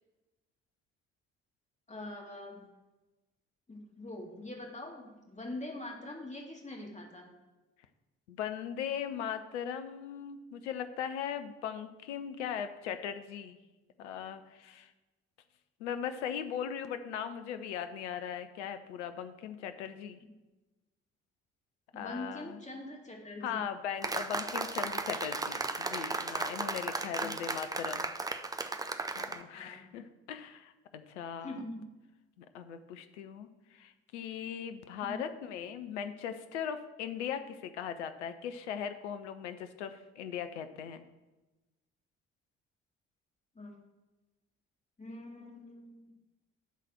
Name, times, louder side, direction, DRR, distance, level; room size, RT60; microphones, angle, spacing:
voice 1, 1.9-2.7 3.7-7.3 21.9-23.6 27.2-27.3 29.5-29.9 31.4-31.9 35.0-35.3 43.5-43.8 45.0-46.1, left 1 dB, 20° left, 0 dB, 2.4 m, -43 dB
voice 2, 8.3-13.6 14.0-14.9 15.8-20.2 21.9-22.6 23.4-28.1 29.2-31.6 32.4-41.0, left 8 dB, 75° left, 9 dB, 0.7 m, -39 dB
sound 1, 24.0-29.4, right 3 dB, 10° right, 0.6 m, -35 dB
12.0 x 4.1 x 6.3 m, 1.1 s
figure-of-eight pair, 40°, 35 cm